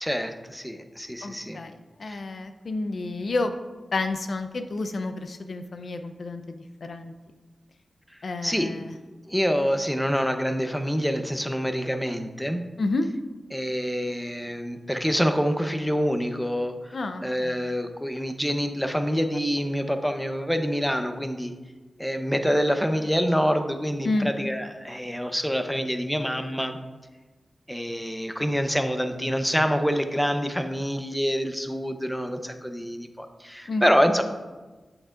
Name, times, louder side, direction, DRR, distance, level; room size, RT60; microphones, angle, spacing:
voice 1, 0.0-1.6 2.1-2.2 8.4-8.8 9.3-12.6 13.5-17.0 17.2-21.5 22.0-26.8 27.7-34.2, equal, 5° left, 7 dB, 0.8 m, -26 dB
voice 2, 1.2-3.5 3.9-7.1 8.2-9.0 12.8-13.1 16.9-17.6 24.0-24.3 33.7-33.8, left 2 dB, 70° left, 8 dB, 0.6 m, -30 dB
8.4 x 8.1 x 2.5 m, 1.2 s
cardioid pair, 55°, 0 cm